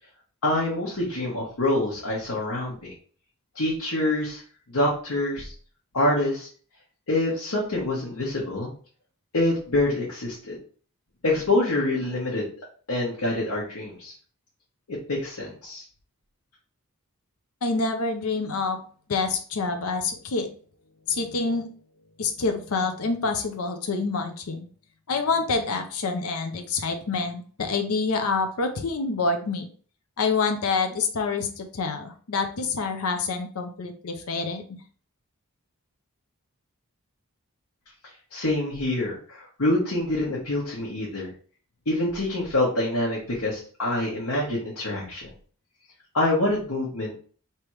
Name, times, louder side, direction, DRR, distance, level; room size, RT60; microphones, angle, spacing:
voice 1, 0.4-2.9 3.5-4.4 4.7-5.5 5.9-6.5 7.1-8.7 9.3-10.6 11.2-12.5 12.9-14.1 14.9-15.8 38.3-41.3 41.9-45.3 46.1-47.1, left 1 dB, 90° left, -5 dB, 1.2 m, -26 dB
voice 2, 17.6-18.8 19.1-20.5 21.1-21.7 22.2-24.6 25.1-29.7 30.2-34.8, left 4 dB, 70° left, 5 dB, 0.6 m, -27 dB
3.4 x 2.9 x 4.6 m, 0.43 s
head